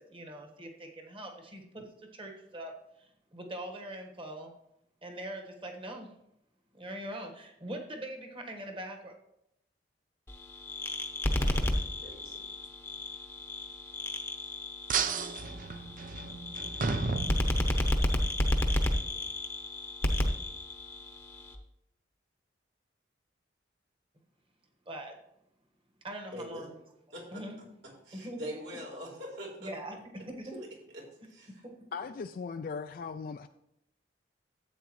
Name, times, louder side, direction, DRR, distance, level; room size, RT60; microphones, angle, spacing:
voice 1, 0.0-1.8 2.1-2.7 3.0-4.5 5.0-6.1 6.7-9.1 24.9-25.2 26.0-26.7 27.3-27.5 28.1-28.4 29.6-30.0 30.3-30.6 31.9-32.0, right 1 dB, 30° right, 3 dB, 1.4 m, -42 dB
sound 1, 10.3-21.5, left 1 dB, 15° left, 0.8 m, -32 dB
voice 2, 12.0-12.4 19.1-19.2 26.3-26.7 27.1-27.7 28.0-29.7 30.6-30.7 30.9-31.0 31.3-31.6, equal, 70° right, -3 dB, 3.9 m, -43 dB
sound 2, 14.9-18.1, right 4 dB, 45° right, 0.6 m, -33 dB
voice 3, 31.9-33.5, left 5 dB, 50° left, 9 dB, 0.3 m, -38 dB
13.0 x 8.1 x 3.1 m, 0.81 s
head